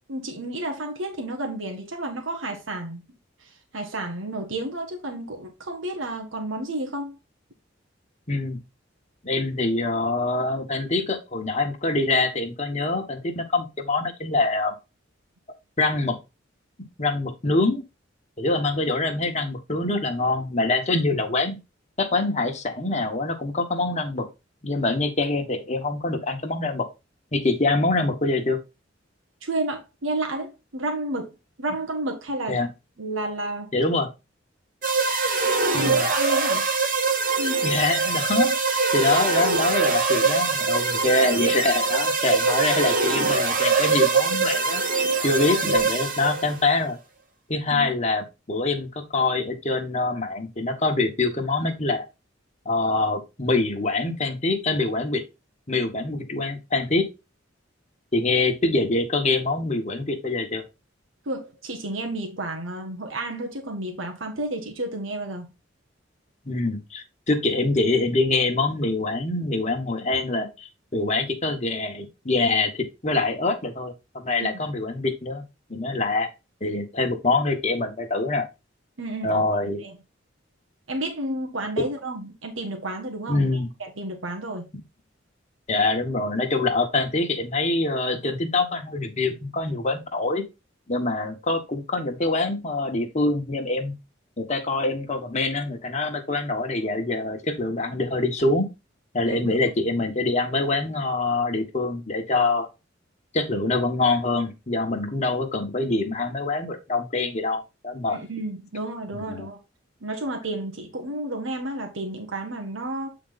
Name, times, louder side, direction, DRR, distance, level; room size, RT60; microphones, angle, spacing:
voice 1, 0.1-3.0 3.4-7.1 29.4-32.6 33.0-33.7 35.7-36.6 37.4-37.6 47.7-47.9 61.2-65.5 74.4-74.5 79.0-80.0 80.9-84.6 99.3-99.5 108.1-109.6 110.0-113.1, right 1 dB, 90° right, 1.4 m, -31 dB
voice 2, 8.3-8.6 9.2-14.7 15.8-16.2 17.0-17.8 18.4-21.6 22.0-24.3 24.6-26.9 27.3-28.6 32.5-32.7 33.7-34.1 35.7-36.0 37.6-47.0 47.5-52.0 52.6-55.2 55.7-57.1 58.1-60.6 66.4-75.4 75.7-76.3 76.6-78.5 79.2-79.8 81.8-81.9 83.3-83.7 85.7-90.4 90.9-94.0 94.4-98.7 99.1-102.7 103.3-108.2 109.3-109.5, left 2 dB, 35° left, 1.3 m, -25 dB
sound 1, 34.8-46.6, right 4 dB, 45° right, 1.3 m, -23 dB
8.4 x 3.9 x 3.9 m
head